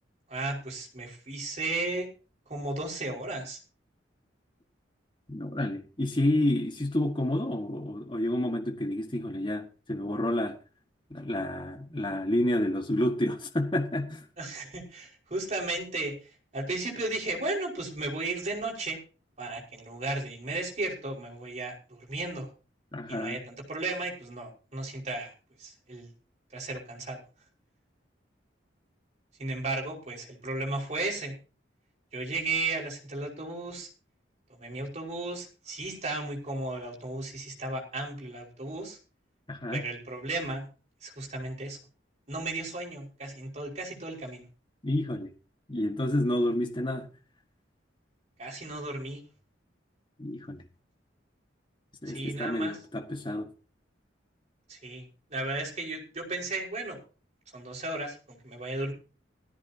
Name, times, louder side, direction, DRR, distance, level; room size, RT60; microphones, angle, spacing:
voice 1, 0.3-2.1 2.5-3.6 14.4-19.0 19.4-22.5 23.1-25.3 25.6-26.1 26.5-27.2 29.4-31.4 32.1-33.9 34.5-39.0 39.7-40.7 41.0-41.8 42.3-44.5 48.4-49.2 52.1-52.8 54.7-55.0 55.3-57.0 57.5-58.9, right 2 dB, 40° right, 5.3 m, -34 dB
voice 2, 5.3-10.6 11.1-14.3 22.9-23.4 39.5-39.8 44.8-45.3 45.7-47.1 50.2-50.6 52.0-53.5, left 1 dB, 25° left, 1.8 m, -29 dB
17.5 x 14.5 x 2.9 m
head